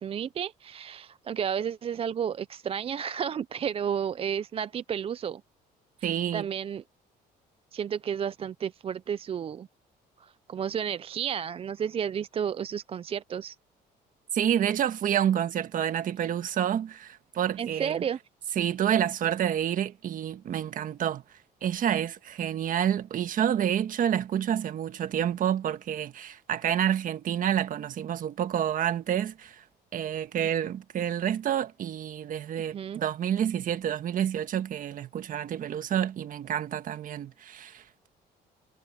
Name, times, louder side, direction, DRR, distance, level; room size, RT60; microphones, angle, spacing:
voice 1, 0.0-5.4 6.0-6.8 7.7-9.7 10.2-13.6 16.2-16.3 17.6-18.2 32.7-33.0, right 8 dB, 35° right, 0.4 m, -32 dB
voice 2, 6.0-6.5 14.3-18.0 18.5-21.2 21.6-29.6 29.9-37.8, right 10 dB, 55° right, 1.5 m, -28 dB
cardioid pair, 110°, 17 cm